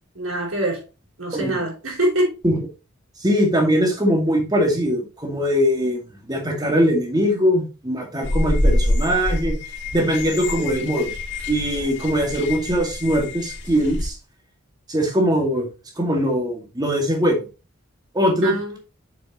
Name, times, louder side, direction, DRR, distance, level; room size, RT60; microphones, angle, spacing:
voice 1, 0.1-0.8 1.2-2.3 18.4-18.8, right 1 dB, 80° right, 4.4 m, -24 dB
voice 2, 1.3-1.6 2.4-2.7 3.2-9.6 9.9-11.1 11.5-14.2 14.9-15.7 16.0-17.5 18.1-18.8, equal, 20° right, 2.2 m, -21 dB
sound 1, 8.2-14.1, left 1 dB, 60° left, 2.0 m, -25 dB
7.4 x 6.4 x 3.0 m
head